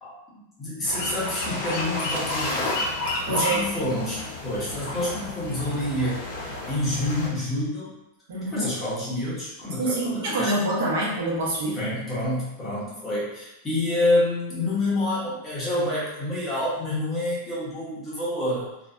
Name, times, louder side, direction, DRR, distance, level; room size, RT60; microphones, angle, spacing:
voice 1, 0.0-7.9 8.3-10.5 11.7-18.7, left 1 dB, 10° left, -9 dB, 0.7 m, -28 dB
sound 1, 0.8-7.3, left 2 dB, 55° left, 0.6 m, -31 dB
voice 2, 3.3-3.7 8.3-8.7 9.8-11.8, right 1 dB, 55° right, -4 dB, 0.7 m, -26 dB
2.5 x 2.1 x 2.4 m, 0.92 s
supercardioid pair, 180°, 0 cm